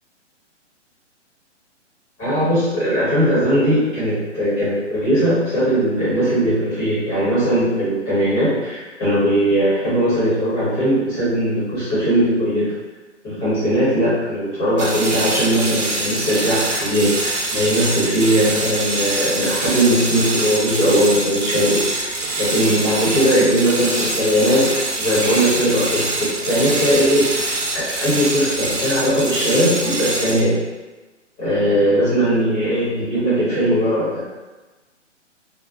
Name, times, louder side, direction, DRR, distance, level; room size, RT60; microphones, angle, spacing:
voice 1, 2.2-12.7 13.2-30.6 31.4-34.2, equal, 20° left, -11 dB, 1.0 m, -19 dB
sound 1, 14.8-30.5, right 2 dB, 85° right, 0.7 m, -24 dB
2.3 x 2.2 x 2.4 m, 1.2 s
hypercardioid pair, 135°, 36 cm